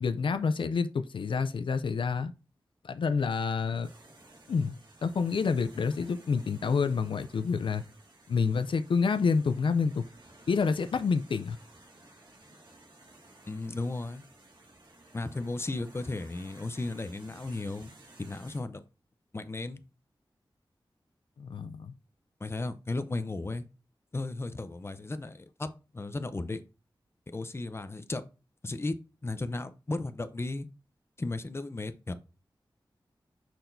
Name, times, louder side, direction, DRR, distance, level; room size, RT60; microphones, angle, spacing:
voice 1, 0.0-2.3 2.8-3.9 4.5-7.8 8.3-10.0 10.5-11.6 21.4-21.9, left 5 dB, 80° left, 0.4 m, -28 dB
sound 1, 3.8-18.6, right 2 dB, 65° right, 2.0 m, -56 dB
voice 2, 13.5-14.2 15.1-17.9 18.2-18.8 19.3-19.8 22.4-23.6 24.1-25.7 25.9-26.6 27.3-28.2 28.6-29.0 29.2-30.7 31.2-32.1, left 2 dB, 30° left, 0.7 m, -35 dB
6.5 x 5.9 x 2.7 m
wide cardioid pair, 85°, 9 cm